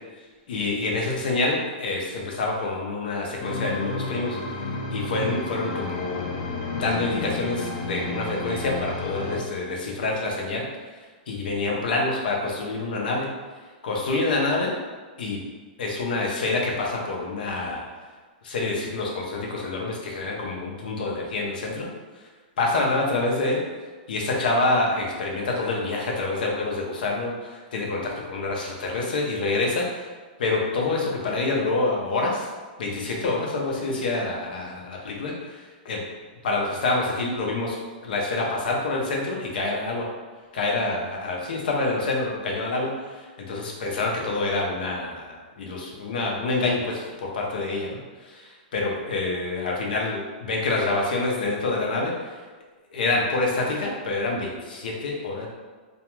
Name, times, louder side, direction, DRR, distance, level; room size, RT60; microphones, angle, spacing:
voice 1, 0.5-4.4 4.9-6.3 6.7-10.6 11.3-13.3 13.8-14.7 15.2-15.4 15.8-17.8 18.4-21.9 22.6-23.6 24.1-30.1 30.4-32.5 32.8-35.6 35.8-36.0 36.4-37.8 38.0-40.0 40.5-48.0 48.3-52.1 52.9-55.5, left 2 dB, 70° left, -1 dB, 0.6 m, -27 dB
sound 1, 3.4-9.4, left 3 dB, 30° left, 0.4 m, -31 dB
2.4 x 2.2 x 3.0 m, 1.4 s
supercardioid pair, 175°, 5 cm